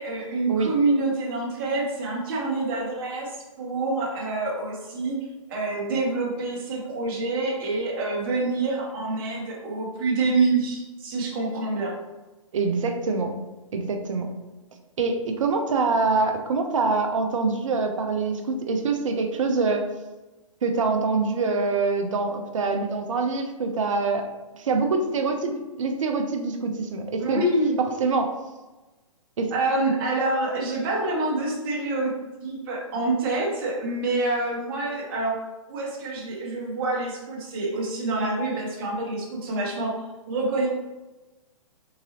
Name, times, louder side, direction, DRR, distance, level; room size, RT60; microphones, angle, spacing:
voice 1, 0.0-5.2 5.5-12.0 27.2-27.8 29.5-35.4 35.7-40.7, right 2 dB, 40° right, -3 dB, 1.1 m, -26 dB
voice 2, 12.5-13.3 13.7-14.3 15.0-19.8 20.6-27.4 27.8-28.4 29.4-29.5, right 4 dB, 65° right, 5 dB, 0.6 m, -25 dB
3.8 x 2.6 x 2.9 m, 1.1 s
figure-of-eight pair, 125°, 18 cm